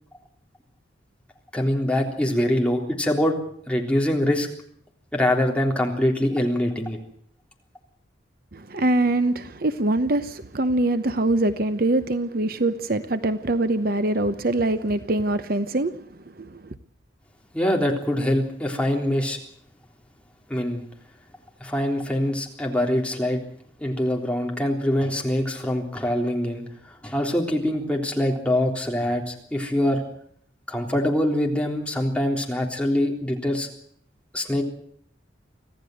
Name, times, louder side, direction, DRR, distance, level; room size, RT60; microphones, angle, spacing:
voice 1, 1.5-3.4 3.7-4.5 5.1-7.0 17.5-19.4 20.5-20.8 21.6-23.4 23.8-30.0 30.7-33.7 34.3-34.6, left 1 dB, 5° left, 3.6 m, -24 dB
voice 2, 8.5-16.0 16.4-16.7, right 2 dB, 50° right, 0.9 m, -23 dB
25.5 x 15.5 x 7.9 m
head